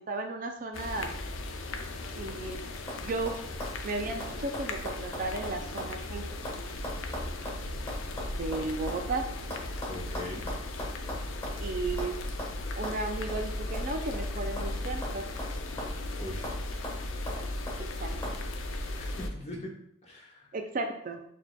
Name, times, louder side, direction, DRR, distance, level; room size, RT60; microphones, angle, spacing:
voice 1, 0.1-1.1 2.2-2.6 3.0-3.4 3.8-6.2 8.4-9.3 11.6-12.2 12.8-15.3 18.0-18.3 20.5-21.2, right 3 dB, 40° right, 4 dB, 0.4 m, -34 dB
sound 1, 0.7-19.3, left 2 dB, 80° left, 0.5 m, -36 dB
sound 2, 2.9-3.0 3.3-6.0 6.2-9.0 9.5-11.6 12.0-12.1 12.4-12.5 12.8-13.0 13.3-13.4 13.7-14.8 15.0-16.1 16.4-16.6 16.8-17.8 18.2-18.4, left 1 dB, 15° left, 1.6 m, -39 dB
voice 2, 9.9-10.5 16.2-16.5 18.9-19.7 20.0-20.5, left 1 dB, 35° left, -3 dB, 1.1 m, -41 dB
6.2 x 2.8 x 2.2 m, 0.71 s
head